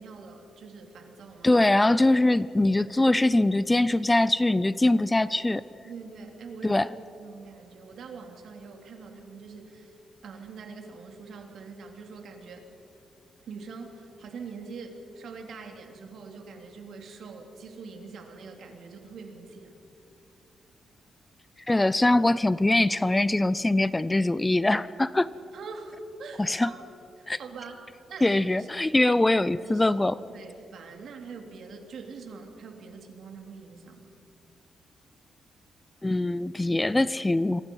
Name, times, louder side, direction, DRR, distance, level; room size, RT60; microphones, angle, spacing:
voice 1, 0.0-1.5 5.8-6.8 7.2-10.0 10.2-12.7 13.5-19.7 25.5-26.8 27.2-27.8 28.1-28.7 29.0-29.2 29.6-29.9 30.3-34.1, right 4 dB, 70° right, 3 dB, 3.3 m, -43 dB
voice 2, 1.4-5.6 6.6-6.9 21.7-25.3 26.4-26.7 27.3-27.4 28.2-30.1 36.0-37.6, left 2 dB, 15° left, 17 dB, 0.4 m, -22 dB
27.5 x 23.5 x 5.6 m, 2.7 s
wide cardioid pair, 140°, 0 cm